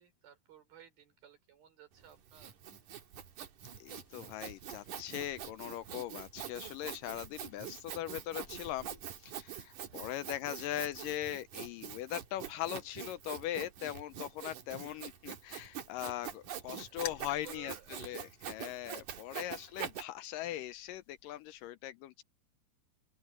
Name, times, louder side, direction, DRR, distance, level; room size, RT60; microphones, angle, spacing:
voice 1, 0.0-2.6 9.9-10.2 14.7-15.0 16.7-18.2 19.2-19.8, right 10 dB, 80° right, 6.4 m, -58 dB
Sawing, 2.0-20.0, right 9 dB, 60° right, 3.2 m, -45 dB
voice 2, 3.8-22.2, left 13 dB, 75° left, 2.1 m, -40 dB
sound 1, 3.9-21.7, left 8 dB, 50° left, 2.2 m, -57 dB
open air
omnidirectional pair, 4.2 m